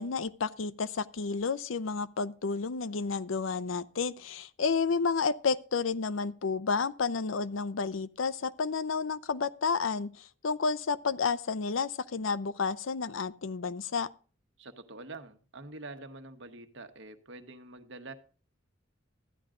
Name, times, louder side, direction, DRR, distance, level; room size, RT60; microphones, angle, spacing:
voice 1, 0.0-14.1, left 5 dB, 85° left, 0.6 m, -31 dB
voice 2, 14.6-18.1, right 2 dB, 65° right, 1.2 m, -46 dB
13.5 x 10.5 x 3.8 m
head